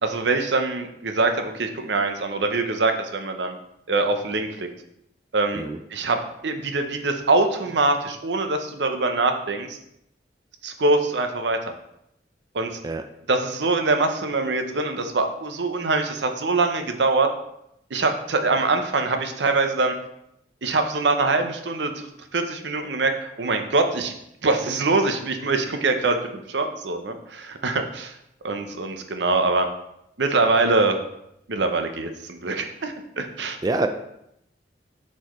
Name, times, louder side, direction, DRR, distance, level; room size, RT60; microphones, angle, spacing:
voice 1, 0.0-3.6 3.9-4.7 5.3-5.6 5.9-9.8 10.6-11.7 12.5-12.7 13.3-17.3 17.9-19.9 20.6-24.1 24.4-28.1 28.4-29.7 30.2-31.0 31.5-33.6, right 3 dB, 85° right, 6 dB, 0.7 m, -23 dB
voice 2, 5.5-5.8 12.8-13.0 33.6-33.9, right 2 dB, 20° right, 7 dB, 0.3 m, -25 dB
8.0 x 4.3 x 3.1 m, 0.79 s
head